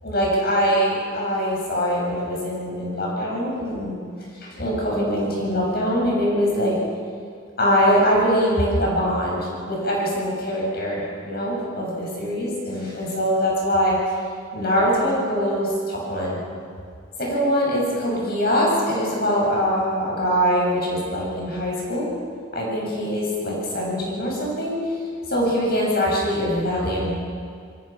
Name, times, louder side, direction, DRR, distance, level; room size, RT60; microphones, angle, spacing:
voice 1, 0.0-4.0 4.4-6.8 7.6-14.0 14.5-16.4 17.2-22.1 22.5-24.7 25.3-27.2, equal, 45° left, -3 dB, 7.7 m, -23 dB
27.0 x 21.5 x 6.0 m, 2.2 s
head